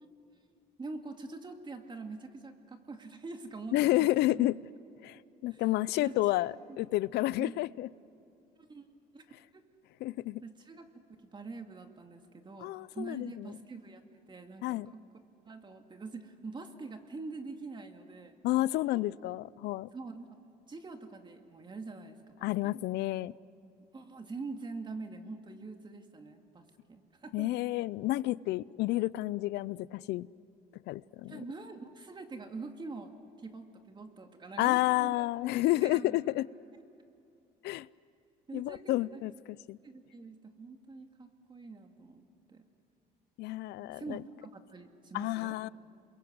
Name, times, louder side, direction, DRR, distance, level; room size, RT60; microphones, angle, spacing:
voice 1, 0.8-4.5 5.5-5.6 6.0-6.8 7.4-7.6 8.6-8.9 9.1-9.2 9.5-9.6 10.4-14.0 14.3-18.3 18.9-19.0 19.9-20.4 20.7-22.7 23.9-27.5 31.2-35.3 35.6-36.2 38.5-38.9 39.8-42.6 43.9-45.6, right 3 dB, 25° right, 5 dB, 2.3 m, -45 dB
voice 2, 3.7-4.6 5.0-7.9 10.0-10.4 12.6-13.5 14.6-14.9 18.4-19.9 22.4-23.3 27.3-30.3 30.9-31.4 34.6-36.5 37.6-37.9 38.5-39.3 39.7-39.8 43.4-44.2 45.1-45.7, left 17 dB, 80° left, 21 dB, 0.5 m, -30 dB
28.5 x 22.5 x 8.0 m, 2.7 s
cardioid pair, 110°, 17 cm